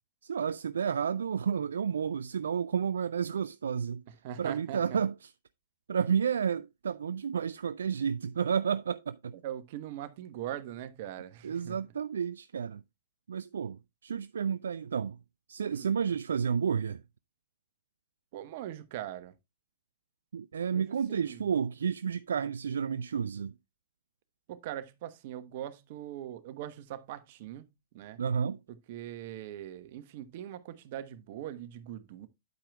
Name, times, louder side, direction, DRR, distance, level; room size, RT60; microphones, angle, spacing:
voice 1, 0.2-4.0 4.4-5.3 5.9-9.3 11.4-12.8 13.3-15.2 15.5-17.0 20.3-23.5 28.2-28.6, right 7 dB, 70° right, 0.3 m, -31 dB
voice 2, 4.2-5.0 9.4-11.8 15.7-15.9 18.3-19.3 20.7-21.5 24.5-27.7 27.9-28.2 28.9-32.3, right 12 dB, 50° right, 1.0 m, -41 dB
9.3 x 8.8 x 2.3 m
figure-of-eight pair, 100°, 0 cm